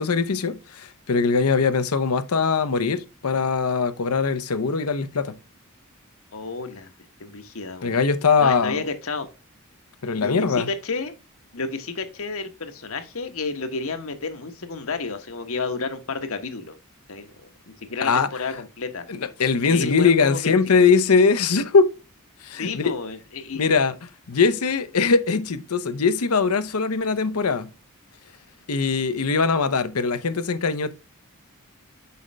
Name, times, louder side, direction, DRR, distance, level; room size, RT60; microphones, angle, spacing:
voice 1, 0.0-5.4 7.8-8.8 10.0-10.7 18.0-18.3 19.1-21.9 22.4-23.0 23.5-24.0 24.3-27.7 28.7-30.9, left 5 dB, 85° left, 0.8 m, -21 dB
voice 2, 6.3-6.9 7.2-8.0 8.4-9.3 10.2-11.1 11.5-16.7 17.1-17.5 17.8-19.0 19.6-20.4 22.6-23.6, left 4 dB, 70° left, 1.2 m, -31 dB
6.9 x 5.2 x 3.4 m
head